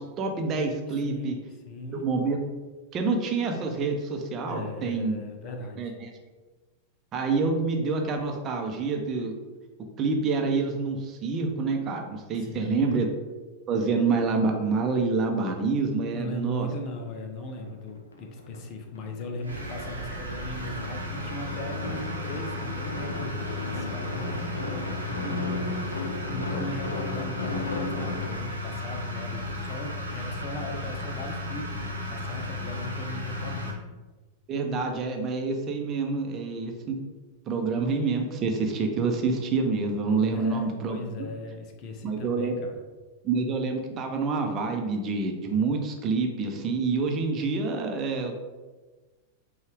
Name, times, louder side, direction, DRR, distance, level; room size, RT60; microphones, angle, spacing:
voice 1, 0.0-1.4 2.0-2.4 2.9-5.2 5.8-6.1 7.1-9.3 10.0-13.1 13.7-16.7 25.2-25.3 34.5-37.0 37.5-41.3 42.0-42.6 43.2-48.4, right 4 dB, 35° right, 3 dB, 0.7 m, -27 dB
voice 2, 0.9-1.3 1.7-2.1 4.5-5.9 12.3-12.9 16.1-33.8 40.2-42.7, left 1 dB, 40° left, 4 dB, 0.7 m, -38 dB
sound 1, 17.1-17.2 17.5-18.7 19.0-28.3, left 2 dB, 75° left, 0.6 m, -36 dB
sound 2, 19.4-33.7, left 2 dB, 85° right, 0.8 m, -35 dB
5.3 x 2.4 x 3.4 m, 1.2 s
figure-of-eight pair, 95°, 0 cm